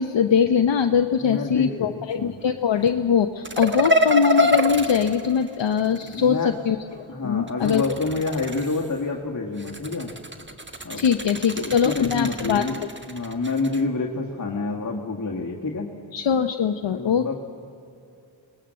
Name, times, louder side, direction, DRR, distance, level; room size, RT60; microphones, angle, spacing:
voice 1, 0.0-7.8 11.0-12.6 16.1-17.3, left 7 dB, 65° left, 7 dB, 0.7 m, -22 dB
voice 2, 1.1-1.9 2.1-2.4 6.1-6.5 7.1-10.2 10.8-11.0 11.6-12.8 13.1-15.9 16.9-17.3, left 3 dB, 40° left, -1 dB, 1.7 m, -28 dB
sound 1, 3.4-6.2 7.5-9.0 9.6-13.8, left 1 dB, 25° right, 1.4 m, -26 dB
22.0 x 19.5 x 7.6 m, 2.7 s
cardioid pair, 55°, 48 cm